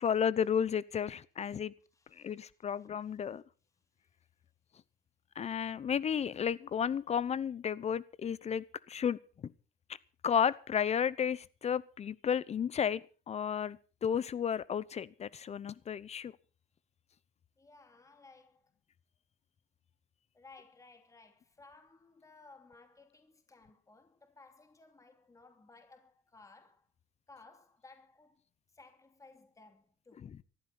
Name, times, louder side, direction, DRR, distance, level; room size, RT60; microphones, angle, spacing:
voice 1, 0.0-1.7 2.2-3.4 5.4-9.5 10.2-13.0 13.3-16.3 30.2-30.4, left 8 dB, 40° left, 0.8 m, -33 dB
voice 2, 1.9-2.5 17.6-18.6 20.3-26.8 27.3-28.4 28.7-30.3, left 3 dB, 20° left, 2.9 m, -59 dB
20.0 x 14.5 x 4.3 m
cardioid pair, 110°, 17 cm